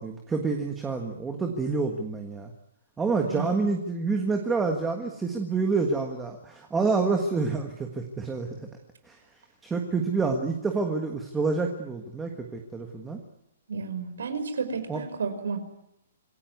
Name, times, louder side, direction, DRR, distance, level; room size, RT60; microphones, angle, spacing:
voice 1, 0.0-2.5 3.0-8.6 9.1-9.2 9.6-13.2 14.9-15.0, right 4 dB, 5° right, 3 dB, 1.5 m, -28 dB
voice 2, 3.2-3.7 13.7-15.6, right 5 dB, 80° right, 9 dB, 5.6 m, -32 dB
26.5 x 17.0 x 9.5 m, 0.81 s
hypercardioid pair, 180°, 0 cm